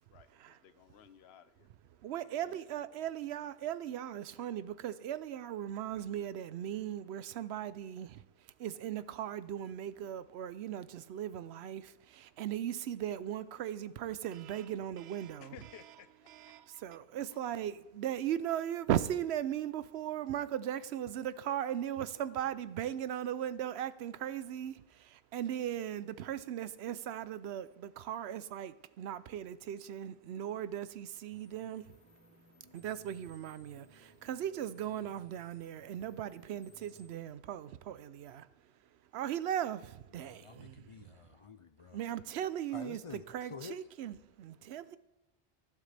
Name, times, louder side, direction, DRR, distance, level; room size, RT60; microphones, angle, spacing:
voice 1, 0.1-1.7 2.4-2.7 15.4-16.1, left 10 dB, 80° left, 0.9 m, -55 dB
voice 2, 2.0-8.2 8.6-16.0 16.3-32.0 32.7-38.5 39.1-41.1 41.9-45.0, right 10 dB, 85° right, 0.8 m, -38 dB
sound 1, 31.3-37.1, left 1 dB, 15° left, 2.8 m, -62 dB
voice 3, 40.1-42.0 42.7-43.8, left 5 dB, 50° left, 0.4 m, -49 dB
13.0 x 11.5 x 3.3 m
omnidirectional pair, 1.1 m